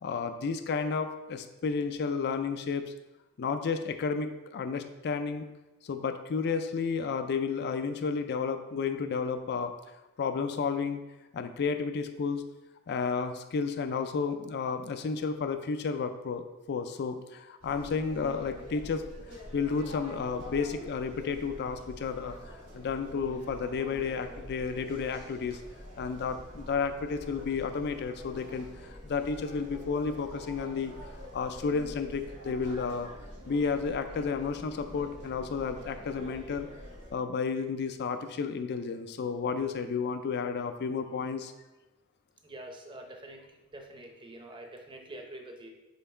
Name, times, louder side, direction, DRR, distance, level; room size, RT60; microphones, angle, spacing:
voice 1, 0.0-2.8 3.4-5.5 5.8-9.7 10.2-11.0 11.3-12.4 12.9-19.1 19.5-22.4 22.7-25.6 26.0-30.9 31.3-33.1 33.5-36.7 37.1-41.5, left 5 dB, 50° left, 8 dB, 0.4 m, -32 dB
sound 1, 17.6-37.1, equal, 80° right, 1.5 m, -46 dB
voice 2, 42.4-43.4 43.7-45.7, right 1 dB, 20° right, 2 dB, 0.7 m, -45 dB
5.6 x 3.9 x 4.3 m, 1.0 s
head